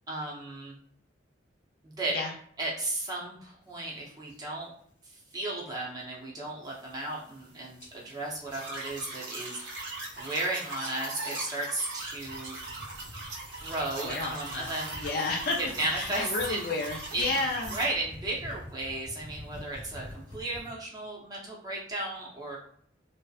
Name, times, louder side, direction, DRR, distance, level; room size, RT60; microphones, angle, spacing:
voice 1, 0.1-0.8 1.8-2.2 2.6-4.7 5.0-9.9 10.2-12.6 13.6-15.1 15.6-16.7 17.1-17.3 17.7-22.6, right 1 dB, 20° right, -4 dB, 0.6 m, -35 dB
sound 1, 3.7-4.5 4.9-5.3 5.6-6.0 6.5-6.6 6.8-7.5 7.8-10.4 10.6-11.1 11.7-20.7, left 1 dB, 70° left, 0.8 m, -48 dB
sound 2, 8.5-17.9, right 2 dB, 80° right, 0.7 m, -40 dB
voice 2, 14.0-15.6 15.9-17.7, left 3 dB, 50° left, -2 dB, 0.3 m, -31 dB
2.6 x 2.0 x 2.3 m, 0.63 s
head